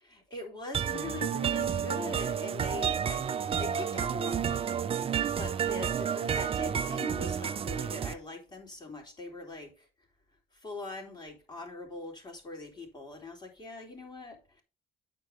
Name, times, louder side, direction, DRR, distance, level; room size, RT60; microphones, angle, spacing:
voice 1, 0.1-4.8 5.4-9.9 10.5-14.6, left 2 dB, 25° left, 3.2 m, -42 dB
sound 1, 0.7-8.1, right 8 dB, 35° right, 0.6 m, -30 dB
sound 2, 0.9-7.7, left 7 dB, 55° left, 2.7 m, -51 dB
9.2 x 4.5 x 5.2 m
cardioid pair, 110°, 17 cm